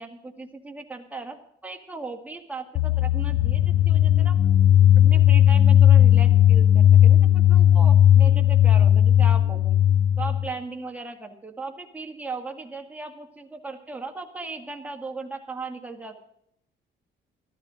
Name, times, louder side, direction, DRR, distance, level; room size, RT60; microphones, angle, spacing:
voice 1, 0.0-1.4 1.6-4.4 5.0-9.8 10.2-16.2, right 3 dB, 5° right, 2 dB, 2.1 m, -37 dB
sound 1, 2.8-10.5, left 11 dB, 65° left, 0.5 m, -16 dB
12.5 x 12.5 x 5.1 m, 0.75 s
cardioid pair, 90°, 20 cm